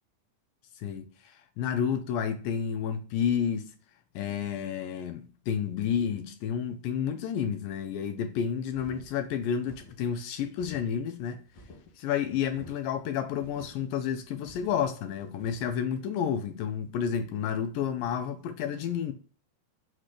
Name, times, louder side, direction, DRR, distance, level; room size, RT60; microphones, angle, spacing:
voice 1, 0.8-3.7 4.2-11.4 12.0-19.1, left 8 dB, 75° left, 2.1 m, -30 dB
sound 1, 8.7-15.8, left 2 dB, 60° left, 1.2 m, -53 dB
6.4 x 3.3 x 5.7 m
omnidirectional pair, 4.5 m